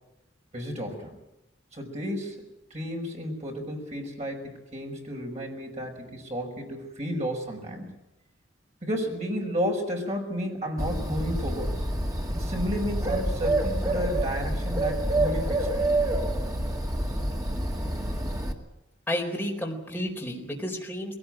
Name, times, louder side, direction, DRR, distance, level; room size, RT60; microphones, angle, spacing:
voice 1, 0.5-1.1 1.7-2.4 2.7-7.9 8.8-11.8 12.4-15.8, equal, 35° right, 1 dB, 5.5 m, -32 dB
Bird, 10.8-18.5, right 1 dB, 20° right, 2.1 m, -27 dB
voice 2, 19.1-21.2, equal, 10° left, -1 dB, 4.1 m, -31 dB
21.5 x 18.0 x 9.1 m, 0.91 s
head